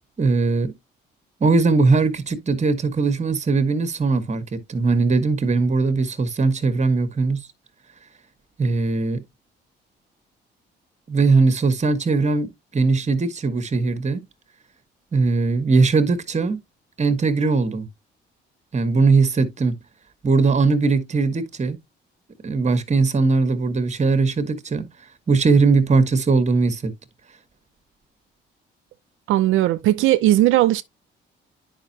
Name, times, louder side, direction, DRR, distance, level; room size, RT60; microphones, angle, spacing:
voice 1, 0.2-0.7 1.4-7.5 8.6-9.2 11.1-14.3 15.1-16.6 17.0-17.9 18.7-19.7 20.2-21.8 22.4-24.9 25.3-26.9, right 4 dB, 35° right, 1.4 m, -20 dB
voice 2, 29.3-30.8, right 14 dB, 90° right, 0.6 m, -17 dB
9.7 x 5.3 x 2.8 m
cardioid pair, 90°, 20 cm